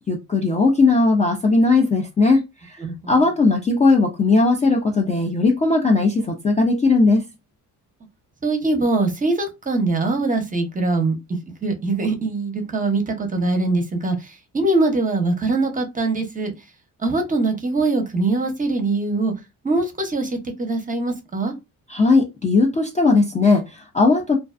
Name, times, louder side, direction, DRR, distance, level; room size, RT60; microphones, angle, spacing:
voice 1, 0.1-2.8 3.1-7.2 21.9-24.4, left 3 dB, 20° left, 0.4 m, -18 dB
voice 2, 8.4-11.1 11.6-16.5 17.0-19.3 19.6-21.5, right 3 dB, 20° right, 0.7 m, -22 dB
2.4 x 2.2 x 2.4 m
cardioid pair, 85°, 38 cm